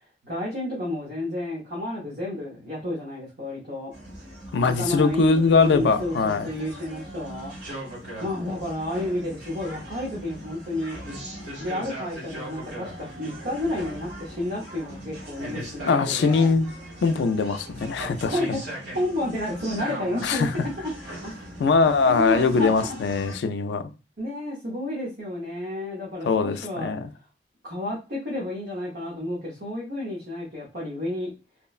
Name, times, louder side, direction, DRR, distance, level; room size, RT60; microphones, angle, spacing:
voice 1, 0.2-3.9 4.6-7.5 8.2-11.0 11.6-16.5 18.3-21.4 22.1-23.0 24.2-26.9 27.6-31.3, left 1 dB, 60° right, 0.8 m, -31 dB
sound 1, 3.9-23.4, right 1 dB, 75° right, 1.4 m, -39 dB
voice 2, 4.5-6.5 15.9-16.7 17.0-18.6 20.2-20.5 21.6-23.9 26.2-27.1, left 4 dB, 75° left, 0.3 m, -22 dB
2.9 x 2.1 x 2.3 m
head